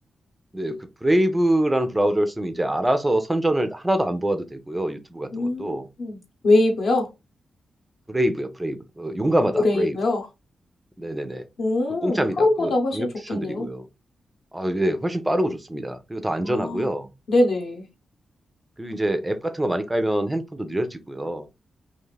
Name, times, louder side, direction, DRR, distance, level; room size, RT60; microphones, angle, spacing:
voice 1, 0.5-5.9 8.1-10.0 11.0-11.5 12.0-13.8 14.5-17.1 18.8-21.5, right 1 dB, 10° right, 0.4 m, -25 dB
voice 2, 5.3-7.1 9.5-10.3 11.6-13.7 16.4-16.9 17.3-17.9, left 2 dB, 55° left, 0.8 m, -23 dB
2.4 x 2.4 x 3.1 m
wide cardioid pair, 170°, 0 cm